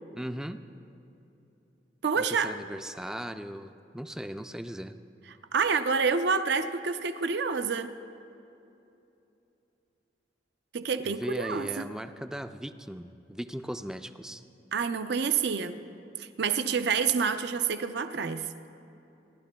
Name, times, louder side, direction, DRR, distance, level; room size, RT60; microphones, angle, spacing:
voice 1, 0.1-0.6 2.2-5.0 11.0-14.4, equal, 5° right, 10 dB, 0.3 m, -38 dB
voice 2, 2.0-2.5 5.5-7.9 10.7-11.9 14.7-15.8 16.2-18.5, right 5 dB, 65° right, 10 dB, 0.5 m, -28 dB
29.0 x 11.5 x 2.3 m, 2.8 s
head